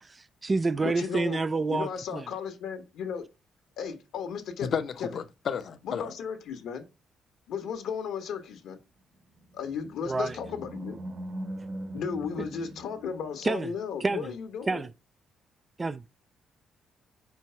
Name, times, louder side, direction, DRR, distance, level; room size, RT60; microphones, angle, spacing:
voice 1, 0.0-2.2 10.1-10.4 13.4-13.7 14.0-14.3 14.7-14.9 15.8-16.0, right 3 dB, 25° right, 0.3 m, -28 dB
voice 2, 0.8-1.4 1.7-3.3 3.8-5.1 5.8-6.8 7.5-8.8 9.5-11.0 11.9-14.9, left 6 dB, 80° left, 1.2 m, -35 dB
voice 3, 4.6-6.0, left 7 dB, 55° left, 0.8 m, -32 dB
Animal, 9.2-13.7, right 1 dB, 50° right, 1.4 m, -41 dB
4.6 x 4.6 x 5.6 m
cardioid pair, 90°, 0 cm